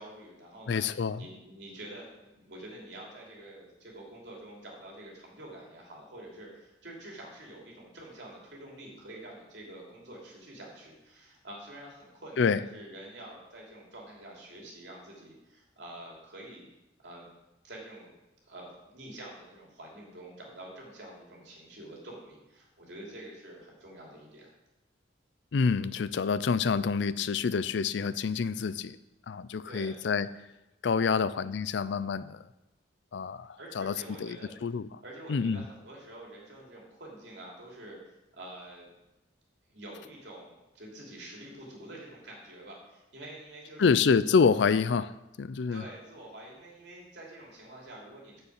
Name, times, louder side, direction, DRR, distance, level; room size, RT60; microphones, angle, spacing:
voice 1, 0.0-0.8 1.2-16.7 17.0-17.3 17.6-18.2 18.5-24.5 29.7-30.0 33.6-34.5 35.0-38.0 38.3-38.9 39.7-44.0 45.7-48.4, right 1 dB, 65° right, -3 dB, 3.0 m, -47 dB
voice 2, 0.7-1.3 12.4-12.6 25.5-29.0 29.3-30.3 30.8-32.4 33.1-34.9 35.3-35.6 43.8-45.1 45.4-45.8, left 5 dB, 70° left, 16 dB, 0.4 m, -27 dB
6.9 x 6.9 x 7.3 m, 0.99 s
head